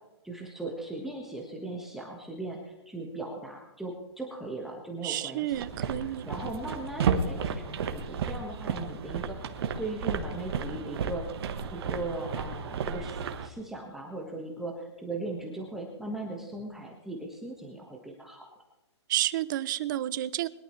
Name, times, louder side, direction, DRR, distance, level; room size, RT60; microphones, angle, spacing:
voice 1, 0.2-5.5 5.8-11.2 11.7-18.4, right 2 dB, ahead, -1 dB, 1.5 m, -38 dB
voice 2, 5.0-6.3 19.1-20.5, right 13 dB, 45° right, 18 dB, 0.6 m, -30 dB
sound 1, 5.5-13.5, right 6 dB, 60° right, 1.4 m, -33 dB
21.5 x 11.5 x 3.2 m, 1.0 s
hypercardioid pair, 145°, 15 cm